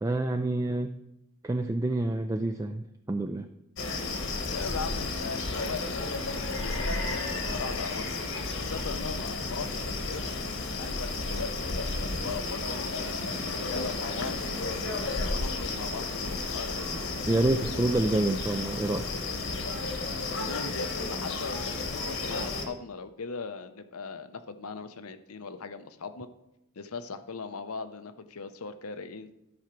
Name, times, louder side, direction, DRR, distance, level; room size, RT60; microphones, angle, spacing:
voice 1, 0.0-1.0 1.4-3.5 17.3-19.1, right 2 dB, 15° right, 6 dB, 0.3 m, -27 dB
sound 1, 3.8-22.7, left 3 dB, 60° left, 1.3 m, -32 dB
voice 2, 4.5-8.1 8.7-10.3 10.8-14.6 15.2-16.9 20.4-26.3 26.8-29.3, left 4 dB, 80° left, 10 dB, 0.7 m, -39 dB
12.0 x 4.9 x 5.9 m, 0.86 s
head